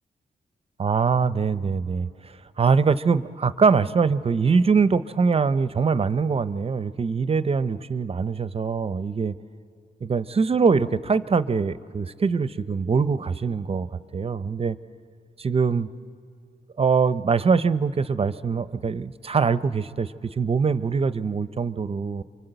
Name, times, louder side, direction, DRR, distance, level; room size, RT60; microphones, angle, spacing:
voice 1, 0.8-9.3 10.0-13.9 14.1-14.8 15.4-15.9 16.8-22.2, right 5 dB, 35° right, 14 dB, 0.6 m, -23 dB
29.0 x 25.0 x 8.0 m, 2.4 s
wide cardioid pair, 130°, 17 cm